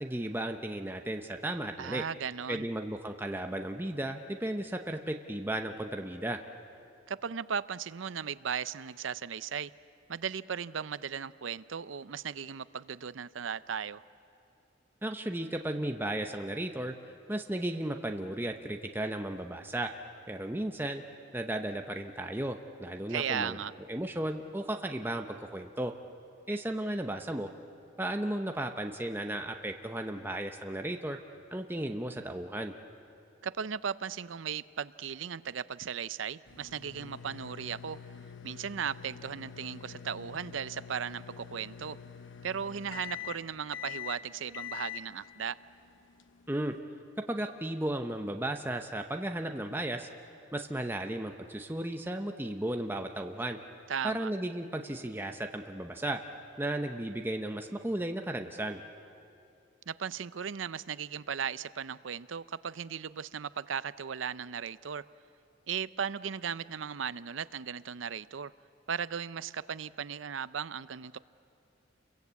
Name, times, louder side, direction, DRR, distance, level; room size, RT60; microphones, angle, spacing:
voice 1, 0.0-2.1 2.5-6.4 15.0-16.9 17.3-19.9 20.3-21.0 21.3-23.6 23.9-25.9 26.5-27.5 28.0-31.2 31.5-32.7 46.5-46.8 47.3-50.1 50.5-53.6 54.0-56.2 56.6-58.8, right 1 dB, 10° right, 4 dB, 0.8 m, -34 dB
voice 2, 1.8-2.7 7.1-9.7 10.1-14.0 23.1-23.7 33.4-38.0 38.4-42.0 42.4-45.6 53.9-54.3 59.9-65.0 65.7-68.5 68.9-71.2, right 7 dB, 85° right, 16 dB, 0.6 m, -36 dB
sound 1, 36.5-46.8, left 9 dB, 80° left, 0.9 m, -45 dB
29.5 x 23.0 x 8.2 m, 2.6 s
head